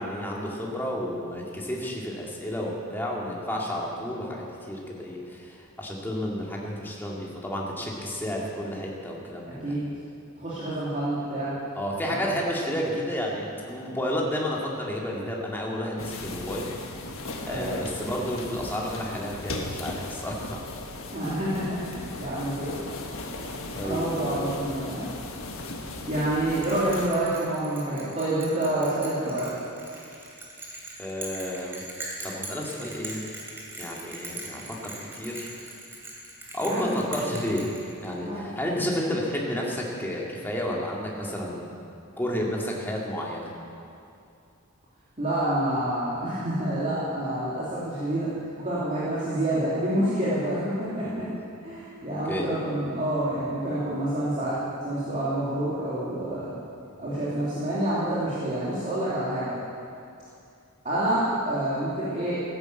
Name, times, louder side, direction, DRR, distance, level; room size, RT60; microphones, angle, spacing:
voice 1, 0.0-9.7 11.7-16.7 17.4-20.6 23.8-24.6 28.7-28.8 31.0-31.8 32.2-33.3 33.8-35.5 36.5-37.7 38.0-41.7 42.2-43.5 51.2-51.3 52.3-52.5, equal, 10° left, -3 dB, 2.3 m, -31 dB
voice 2, 9.4-9.8 10.4-11.5 12.0-12.2 17.4-17.9 21.1-22.7 23.8-25.1 26.1-29.5 36.6-36.9 37.3-37.4 38.2-38.5 45.2-48.3 48.6-51.3 51.6-56.6 57.0-59.6 60.8-62.4, right 1 dB, 35° right, -10 dB, 2.8 m, -28 dB
sound 1, 16.0-27.1, left 2 dB, 65° left, 1.6 m, -37 dB
Bell, 26.6-38.3, right 2 dB, 10° right, 3.0 m, -40 dB
15.5 x 10.5 x 7.9 m, 2.5 s
head